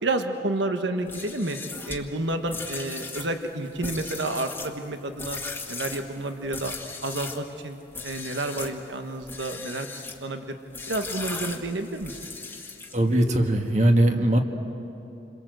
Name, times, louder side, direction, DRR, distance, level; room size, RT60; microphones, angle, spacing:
voice 1, 0.0-1.6 1.9-5.4 5.7-6.7 7.0-7.8 8.0-9.9 10.2-10.6 10.9-12.2, right 2 dB, 75° right, 6 dB, 1.4 m, -30 dB
sound 1, 1.0-7.5 7.9-8.8 9.2-10.2 10.7-13.1, left 3 dB, 10° left, 1.6 m, -37 dB
voice 2, 12.9-14.4, right 1 dB, 40° right, 4 dB, 1.7 m, -20 dB
29.0 x 22.0 x 7.8 m, 2.9 s
head